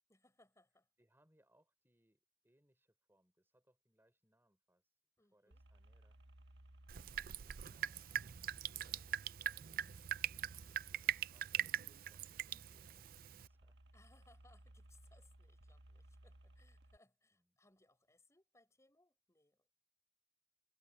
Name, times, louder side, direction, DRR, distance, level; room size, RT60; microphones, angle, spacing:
voice 1, 0.1-0.9 5.2-5.6 7.1-7.6 13.9-19.7, left 2 dB, 15° left, 7.1 m, -71 dB
voice 2, 1.0-6.2 7.6-8.1 8.7-13.8 17.3-17.6, right 1 dB, 15° right, 5.0 m, -77 dB
sound 1, 5.5-17.0, right 1 dB, 80° right, 1.4 m, -62 dB
Drip, 6.9-13.5, right 11 dB, 55° right, 0.4 m, -42 dB
head